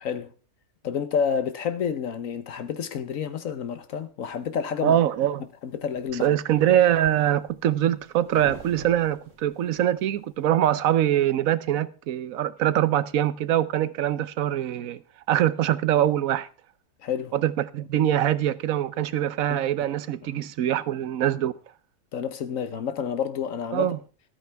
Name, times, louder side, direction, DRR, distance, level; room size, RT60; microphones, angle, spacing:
voice 1, 0.0-0.3 0.8-5.0 5.6-6.3 17.0-17.3 19.5-19.6 20.2-20.4 22.1-23.9, left 7 dB, 75° left, 1.3 m, -29 dB
sound 1, 4.5-5.2 5.7-10.5, right 3 dB, 65° right, 2.3 m, -47 dB
voice 2, 4.8-5.4 6.2-15.0 15.3-16.5 17.3-21.5 23.7-24.0, right 11 dB, 90° right, 1.2 m, -23 dB
13.5 x 13.0 x 3.4 m
omnidirectional pair, 1.4 m